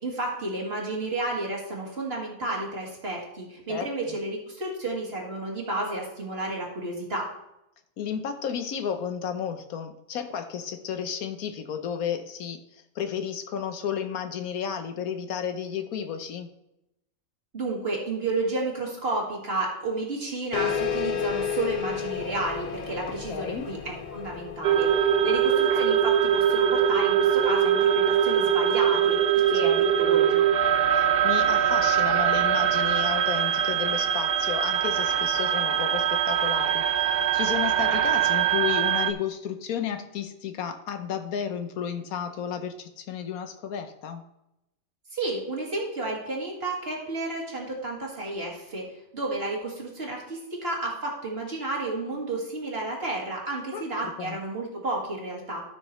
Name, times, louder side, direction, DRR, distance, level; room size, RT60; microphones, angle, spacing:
voice 1, 0.0-7.3 17.5-30.5 45.1-48.8 49.1-55.6, right 2 dB, 45° right, -2 dB, 2.3 m, -31 dB
voice 2, 3.7-4.2 8.0-16.5 23.1-23.7 29.6-30.2 31.2-44.2 53.7-54.4, left 8 dB, 85° left, 8 dB, 1.3 m, -33 dB
sound 1, 20.5-25.6, left 7 dB, 60° left, 0.5 m, -32 dB
sound 2, 24.6-39.1, right 9 dB, 60° right, 0.6 m, -22 dB
13.5 x 6.2 x 3.1 m, 0.86 s
omnidirectional pair, 1.5 m